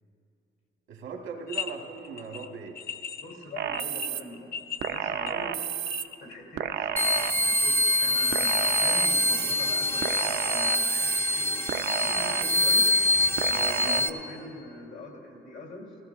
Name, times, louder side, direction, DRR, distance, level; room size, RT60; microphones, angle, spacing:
voice 1, 0.9-2.8 13.8-14.0, right 5 dB, 85° right, 2 dB, 1.5 m, -39 dB
sound 1, 1.5-1.7 2.0-6.3, left 7 dB, 50° left, 0.8 m, -37 dB
voice 2, 3.2-5.5 6.2-12.9 13.5-16.0, left 1 dB, 70° left, -1 dB, 3.0 m, -43 dB
sound 2, 3.6-4.2 4.8-6.0 6.6-7.8 8.3-9.5 10.0-11.2 11.7-12.9 13.4-14.0, right 9 dB, 55° right, 0.5 m, -31 dB
sound 3, 7.0-14.1, left 1 dB, 10° left, 0.6 m, -25 dB
19.0 x 16.0 x 2.5 m, 2.8 s
cardioid pair, 90°, 20 cm